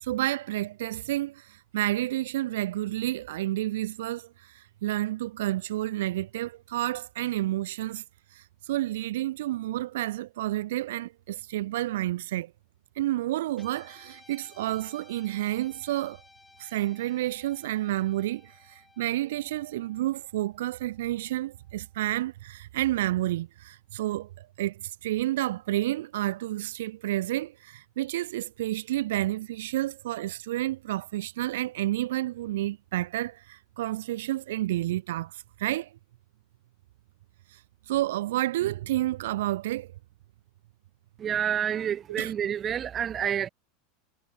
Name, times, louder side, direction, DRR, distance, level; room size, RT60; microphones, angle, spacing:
voice 1, 0.0-8.0 8.3-12.5 13.0-16.2 16.6-24.3 24.6-35.9 37.5-37.6 37.9-39.9 42.2-42.3, right 15 dB, 85° right, 0.4 m, -30 dB
Guitar, 13.5-22.0, left 3 dB, 10° left, 2.8 m, -58 dB
voice 2, 41.2-43.5, right 9 dB, 30° right, 0.8 m, -28 dB
supercardioid pair, 130°, 0 cm